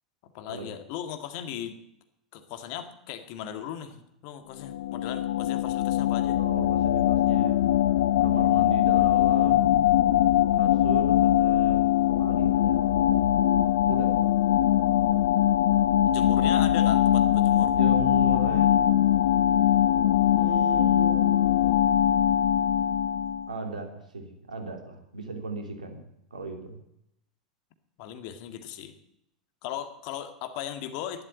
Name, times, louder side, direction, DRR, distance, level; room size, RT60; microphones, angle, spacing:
voice 1, 0.2-1.8 2.3-4.0 4.2-6.4 16.1-17.8 28.0-28.9 29.6-31.2, left 10 dB, 50° left, 9 dB, 2.0 m, -37 dB
sound 1, 4.6-23.5, left 12 dB, 65° left, 0.6 m, -22 dB
voice 2, 6.4-7.6 8.2-9.8 10.6-13.0 13.9-14.1 17.6-19.0 20.3-21.4 23.5-26.0 26.3-26.8, right 3 dB, 80° right, 5 dB, 3.0 m, -36 dB
12.0 x 11.5 x 9.0 m, 0.80 s
figure-of-eight pair, 90°, 4 cm